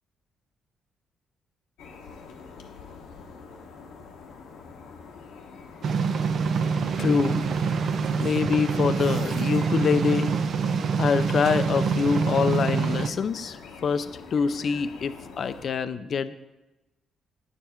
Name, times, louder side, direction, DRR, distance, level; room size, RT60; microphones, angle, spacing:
sound 1, 1.8-15.7, left 5 dB, 85° left, 1.0 m, -46 dB
sound 2, 5.8-13.1, right 5 dB, 60° right, 0.5 m, -26 dB
voice 1, 7.0-7.5 8.2-10.3 11.0-16.3, left 6 dB, 55° left, 12 dB, 0.5 m, -25 dB
9.9 x 7.3 x 4.5 m, 1.0 s
cardioid pair, 90°, 0 cm